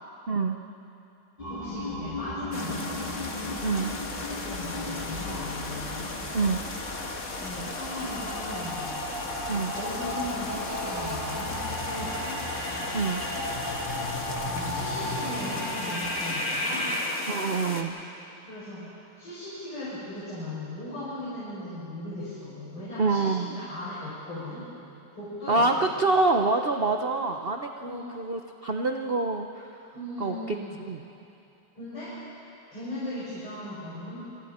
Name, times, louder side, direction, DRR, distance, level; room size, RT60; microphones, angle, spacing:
voice 1, 0.3-0.6 3.6-3.9 6.3-6.6 9.5-9.7 12.9-13.2 17.3-18.0 23.0-23.6 25.5-29.8 30.2-31.0, right 3 dB, 80° right, 4 dB, 0.5 m, -26 dB
sound 1, 1.4-17.0, left 1 dB, 20° left, 4.6 m, -35 dB
voice 2, 1.5-3.2 4.3-6.3 7.4-9.1 9.7-11.6 11.8-12.4 14.4-17.0 18.4-24.6 25.1-25.9 27.8-28.0 29.9-30.6 31.7-34.2, left 1 dB, 75° left, -11 dB, 8.0 m, -38 dB
sound 2, 2.5-17.8, left 3 dB, 35° left, 1.7 m, -37 dB
sound 3, 3.4-11.8, right 2 dB, 35° right, 2.9 m, -44 dB
28.0 x 27.0 x 4.4 m, 2.8 s
omnidirectional pair, 2.4 m